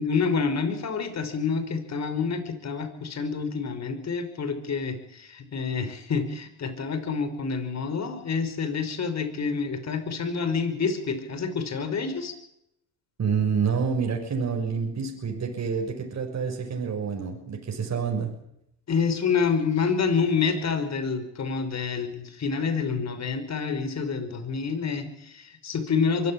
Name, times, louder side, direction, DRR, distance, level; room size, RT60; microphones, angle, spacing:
voice 1, 0.0-12.3 18.9-26.3, left 5 dB, 45° left, 10 dB, 5.5 m, -28 dB
voice 2, 13.2-18.3, right 6 dB, 45° right, 2 dB, 6.5 m, -28 dB
24.0 x 15.0 x 9.0 m, 0.78 s
supercardioid pair, 75°, 37 cm